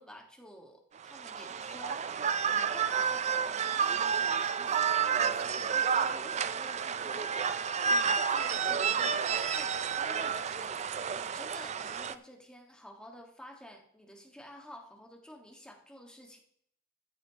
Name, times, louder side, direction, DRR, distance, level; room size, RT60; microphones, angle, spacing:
voice 1, 0.0-2.1 2.4-10.8 11.1-16.4, equal, 5° left, 1 dB, 1.5 m, -51 dB
sound 1, 1.0-12.1, right 6 dB, 35° right, 0.4 m, -30 dB
14.0 x 8.8 x 2.9 m, 0.70 s
head